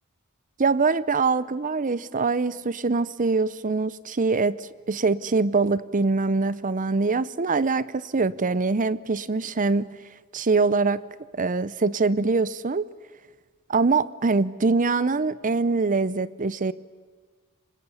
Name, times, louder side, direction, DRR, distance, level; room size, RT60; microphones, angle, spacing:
voice 1, 0.6-9.9 10.3-11.1 11.4-12.9 13.7-16.7, right 4 dB, 35° right, 18 dB, 0.7 m, -23 dB
30.0 x 20.0 x 8.1 m, 1.5 s
head